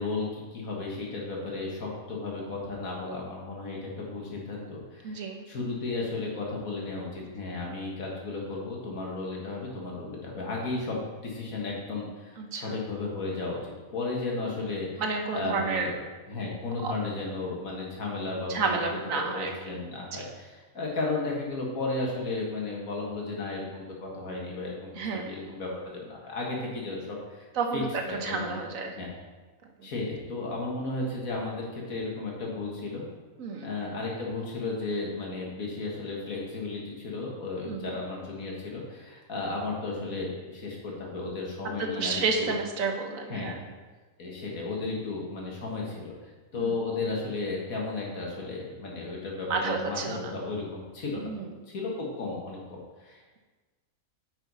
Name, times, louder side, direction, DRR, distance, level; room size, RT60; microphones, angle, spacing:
voice 1, 0.0-14.9 15.3-16.0 16.3-18.8 19.1-27.5 27.7-27.8 28.1-28.5 29.0-29.1 29.8-33.0 33.6-42.5 43.3-43.5 44.2-51.3 51.7-53.4, left 3 dB, 75° left, -2 dB, 2.1 m, -34 dB
voice 2, 5.0-5.4 12.4-12.8 15.0-15.9 16.8-16.9 18.5-19.8 20.1-20.2 24.9-25.3 27.5-29.0 29.8-29.9 33.4-33.7 37.6-38.0 41.8-43.7 46.5-46.8 49.5-50.4 51.1-51.5, right 4 dB, 70° right, 3 dB, 1.3 m, -31 dB
9.6 x 5.7 x 4.1 m, 1.3 s
omnidirectional pair, 1.5 m